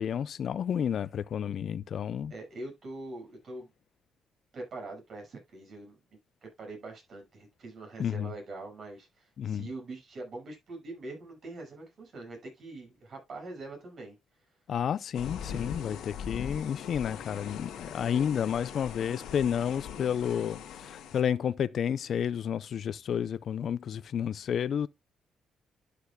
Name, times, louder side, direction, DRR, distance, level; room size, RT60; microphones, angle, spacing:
voice 1, 0.0-2.3 8.0-8.3 9.4-9.7 14.7-24.9, left 8 dB, 60° left, 0.5 m, -31 dB
voice 2, 2.3-3.7 4.5-6.0 6.6-14.2, right 2 dB, 55° right, 5.7 m, -43 dB
sound 1, 15.1-21.2, left 8 dB, 80° left, 1.8 m, -41 dB
11.5 x 6.7 x 2.2 m
cardioid pair, 90°, 0 cm